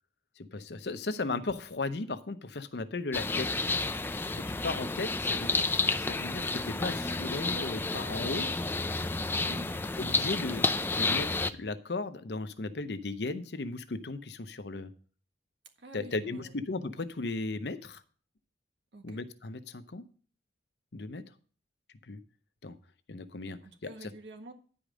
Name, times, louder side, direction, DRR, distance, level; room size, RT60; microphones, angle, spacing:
voice 1, 0.4-3.5 4.3-5.5 6.0-8.5 9.9-14.9 15.9-18.0 19.0-20.0 20.9-21.2 22.1-22.2 22.6-22.8 23.1-24.1, left 3 dB, 65° left, 11 dB, 0.7 m, -36 dB
sound 1, 3.1-11.5, left 3 dB, 10° left, 0.3 m, -31 dB
voice 2, 9.4-9.8 15.8-16.6 18.9-19.2 23.6-24.5, right 1 dB, 80° right, 5 dB, 1.5 m, -48 dB
10.5 x 5.0 x 6.2 m, 0.43 s
head